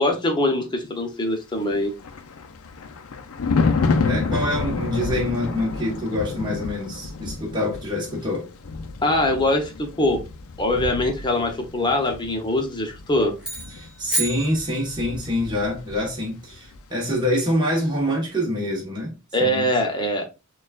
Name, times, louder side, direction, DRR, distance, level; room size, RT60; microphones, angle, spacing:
voice 1, 0.0-1.9 9.0-10.2 10.6-13.3 19.3-20.3, left 1 dB, 20° left, 0.9 m, -22 dB
Thunder, 1.6-16.2 16.5-16.8, left 4 dB, 90° left, 0.5 m, -29 dB
voice 2, 4.0-8.5 13.7-19.7, left 1 dB, 20° right, 1.2 m, -26 dB
sound 1, 13.4-15.3, right 1 dB, 5° right, 2.1 m, -30 dB
6.2 x 2.4 x 2.4 m
head